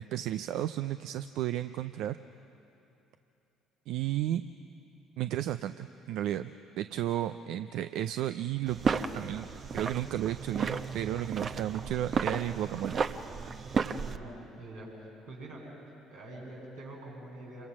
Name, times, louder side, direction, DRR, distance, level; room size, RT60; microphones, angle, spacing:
voice 1, 0.0-2.2 3.9-4.4 5.2-6.5 6.8-8.8 9.1-9.5 9.7-13.0, right 12 dB, 65° right, 11 dB, 0.5 m, -33 dB
sound 1, 8.7-14.2, right 5 dB, 45° right, 1.0 m, -33 dB
voice 2, 14.0-15.6 16.1-17.7, right 1 dB, 90° right, -7 dB, 7.9 m, -45 dB
27.5 x 23.5 x 6.2 m, 2.8 s
hypercardioid pair, 55°, 0 cm